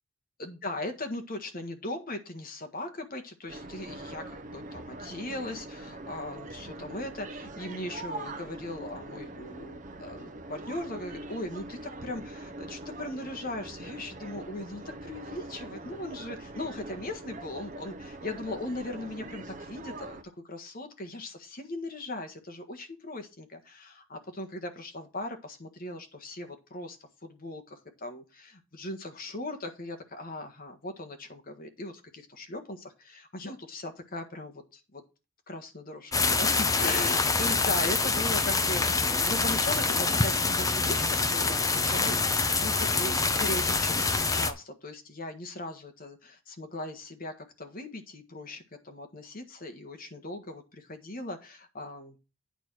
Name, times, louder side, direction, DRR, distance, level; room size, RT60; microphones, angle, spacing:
voice 1, 0.4-20.2 20.4-27.0 27.2-35.0 35.5-52.2, left 1 dB, 45° left, 5 dB, 1.5 m, -39 dB
sound 1, 3.5-20.2, right 2 dB, 40° right, 0.7 m, -43 dB
sound 2, 36.1-44.5, left 4 dB, 15° left, 0.7 m, -26 dB
9.1 x 4.4 x 6.3 m, 0.30 s
head